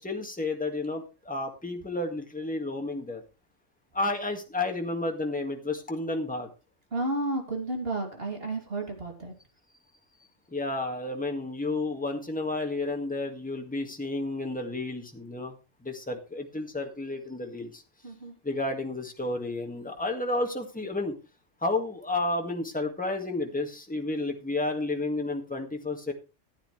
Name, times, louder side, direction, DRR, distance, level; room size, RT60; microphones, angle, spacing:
voice 1, 0.0-3.2 3.9-6.5 10.5-15.5 15.8-17.8 18.4-21.1 21.6-26.1, left 2 dB, 5° left, 3 dB, 1.8 m, -31 dB
voice 2, 6.9-9.3 18.0-18.3, right 2 dB, 50° right, 2 dB, 3.1 m, -32 dB
14.5 x 10.0 x 3.3 m, 0.30 s
omnidirectional pair, 1.3 m